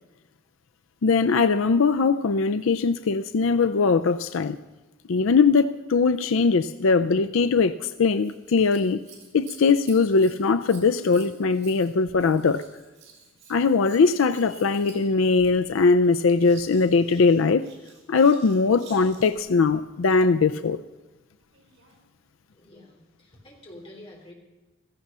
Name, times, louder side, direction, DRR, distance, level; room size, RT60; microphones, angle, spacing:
voice 1, 1.0-4.6 5.1-9.0 9.3-12.6 13.5-17.7 18.1-20.8, left 4 dB, 80° left, 10 dB, 0.5 m, -21 dB
Scissors, 8.1-19.5 21.4-22.0 22.8-22.9, right 6 dB, 85° right, 5.3 m, -51 dB
voice 2, 22.5-24.3, left 1 dB, 25° left, -1 dB, 3.6 m, -47 dB
16.5 x 14.5 x 5.5 m, 1.2 s
head